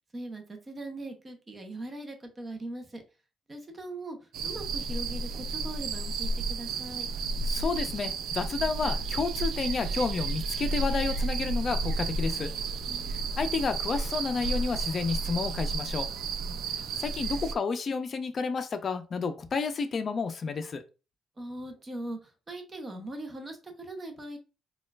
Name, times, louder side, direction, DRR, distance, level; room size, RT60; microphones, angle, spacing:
voice 1, 0.1-3.0 3.5-7.1 12.9-13.4 16.4-16.8 21.4-24.4, right 2 dB, 25° right, 4 dB, 0.8 m, -40 dB
sound 1, 4.3-17.5, right 3 dB, 75° right, 0.3 m, -32 dB
voice 2, 7.4-12.5 13.1-16.1 17.0-20.8, left 4 dB, 40° left, 8 dB, 0.5 m, -31 dB
4.2 x 2.3 x 2.4 m, 0.32 s
cardioid pair, 115°, 0 cm